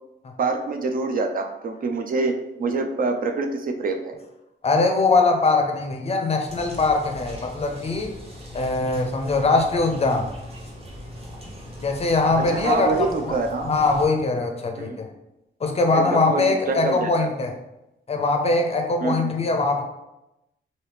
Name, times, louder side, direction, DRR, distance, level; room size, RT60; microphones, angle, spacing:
voice 1, 0.4-4.2 12.4-13.7 14.8-15.0 15.9-17.3 19.0-19.3, right 3 dB, 45° right, 5 dB, 0.4 m, -26 dB
voice 2, 4.6-8.1 8.5-10.3 11.8-13.3 13.7-15.1 15.6-17.5 18.1-19.8, left 3 dB, 30° left, 3 dB, 0.5 m, -22 dB
sound 1, 6.4-14.1, left 1 dB, 30° right, 0.9 m, -39 dB
3.1 x 2.7 x 3.3 m, 0.92 s
wide cardioid pair, 125°, 20 cm